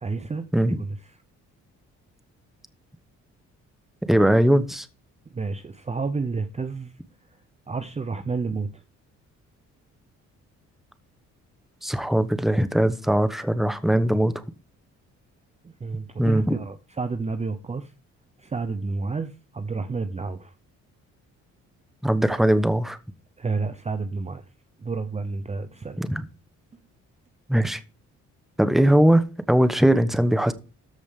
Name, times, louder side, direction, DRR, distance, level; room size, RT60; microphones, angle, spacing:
voice 1, 0.0-0.5 0.8-1.0 5.3-6.9 7.7-8.8 15.8-17.9 18.4-20.5 23.4-24.4 24.8-26.0, right 4 dB, 20° right, 0.8 m, -30 dB
voice 2, 4.1-4.9 11.8-14.4 16.2-16.6 22.0-23.0 26.0-26.3 27.5-27.8 28.6-30.5, right 1 dB, ahead, 1.1 m, -20 dB
14.0 x 5.0 x 3.7 m
cardioid pair, 90°, 30 cm